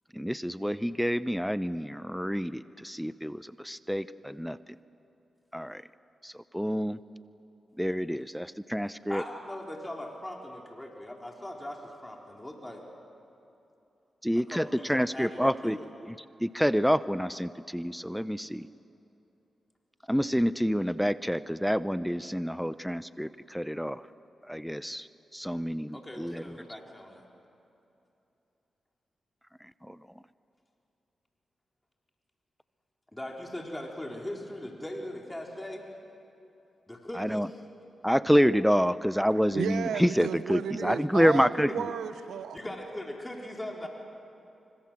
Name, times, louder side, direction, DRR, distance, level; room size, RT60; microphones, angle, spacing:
voice 1, 0.2-4.6 5.5-5.8 6.2-7.0 7.8-9.2 14.2-15.8 16.4-18.7 20.1-24.0 24.5-25.0 25.3-26.4 29.9-30.0 37.2-37.5 38.0-41.7, equal, ahead, 15 dB, 0.7 m, -28 dB
voice 2, 9.1-12.8 14.5-15.9 25.9-27.2 33.1-35.9 36.9-37.6 41.7-41.8 42.5-43.9, left 1 dB, 15° left, 0 dB, 4.3 m, -40 dB
voice 3, 39.5-42.6, right 8 dB, 85° right, 11 dB, 1.1 m, -33 dB
26.0 x 25.5 x 7.6 m, 2.9 s
supercardioid pair, 45°, 0 cm